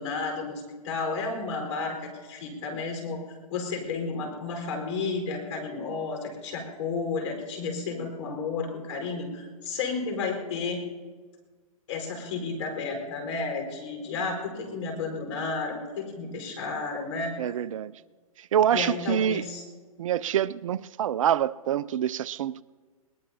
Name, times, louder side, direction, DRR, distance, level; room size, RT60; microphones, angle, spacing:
voice 1, 0.0-3.2 3.5-10.8 11.9-17.3 18.7-19.6, left 4 dB, 55° left, 4.6 m, -32 dB
voice 2, 17.4-17.9 18.5-19.4 20.0-22.6, right 10 dB, 60° right, 0.4 m, -26 dB
21.0 x 20.0 x 2.8 m
hypercardioid pair, 120°, 19 cm